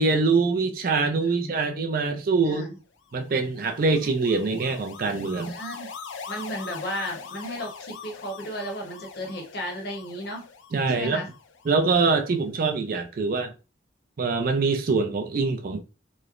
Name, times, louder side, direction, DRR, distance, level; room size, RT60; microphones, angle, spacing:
voice 1, 0.0-2.7 3.1-5.5 10.7-11.2 11.7-13.5 14.2-15.8, right 4 dB, 45° right, 0.4 m, -24 dB
voice 2, 1.2-1.6 2.4-2.8 5.4-5.9 6.3-10.5 10.9-11.3, equal, 55° left, 0.8 m, -34 dB
sound 1, 3.1-12.4, left 5 dB, 75° left, 0.4 m, -43 dB
3.0 x 2.0 x 2.4 m
head